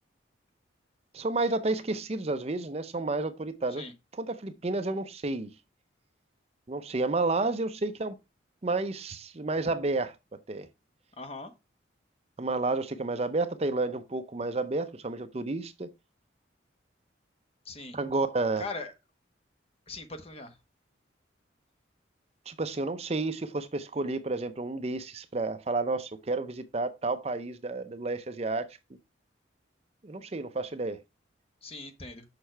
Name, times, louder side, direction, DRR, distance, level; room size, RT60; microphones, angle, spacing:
voice 1, 1.1-3.8 4.1-5.5 6.7-8.1 8.6-10.1 10.5-10.7 12.4-15.9 17.9-18.6 22.5-28.8 30.0-31.0, right 3 dB, 35° right, 0.5 m, -31 dB
voice 2, 11.2-11.5 17.7-18.0 18.6-18.9 19.9-20.5 31.6-32.2, left 3 dB, 30° left, 1.2 m, -40 dB
6.7 x 5.5 x 4.5 m
head